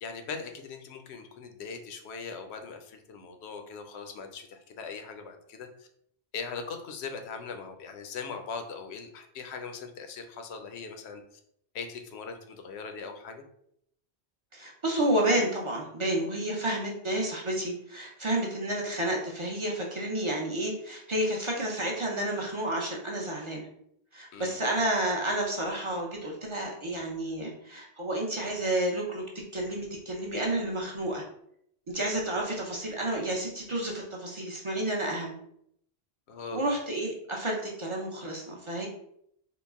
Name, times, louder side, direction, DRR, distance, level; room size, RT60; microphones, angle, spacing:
voice 1, 0.0-5.9 6.3-11.2 11.7-13.4 24.3-24.6 36.3-36.7, left 5 dB, 75° left, 6 dB, 0.8 m, -40 dB
voice 2, 14.5-23.7 24.1-29.2 29.5-31.2 31.9-35.4 36.5-38.9, right 1 dB, 35° right, -1 dB, 0.5 m, -30 dB
3.8 x 2.1 x 3.5 m, 0.72 s
omnidirectional pair, 1.1 m